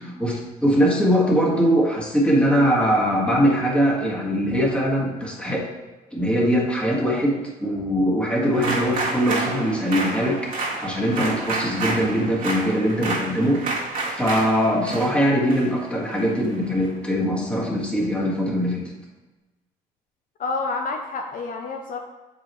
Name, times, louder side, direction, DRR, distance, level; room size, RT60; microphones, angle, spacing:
voice 1, 0.0-5.7 6.1-18.9, equal, 5° left, -3 dB, 1.7 m, -22 dB
sound 1, 8.5-16.9, right 3 dB, 55° right, 1.8 m, -30 dB
voice 2, 20.4-22.0, left 3 dB, 55° left, 3 dB, 0.6 m, -28 dB
6.8 x 5.0 x 3.1 m, 1.2 s
cardioid pair, 85°, 17 cm